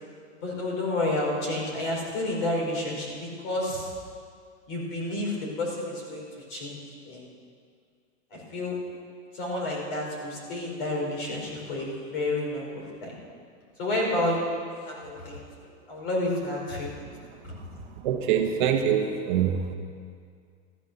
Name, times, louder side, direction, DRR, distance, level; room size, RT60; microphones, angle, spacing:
voice 1, 0.3-3.9 4.7-6.8 7.0-7.2 8.3-8.7 9.3-13.1 13.8-17.1 17.4-17.5, left 1 dB, 45° left, -2 dB, 4.7 m, -30 dB
voice 2, 18.0-19.7, right 8 dB, 40° right, 3 dB, 1.0 m, -24 dB
14.0 x 13.5 x 6.7 m, 2.2 s
supercardioid pair, 180°, 36 cm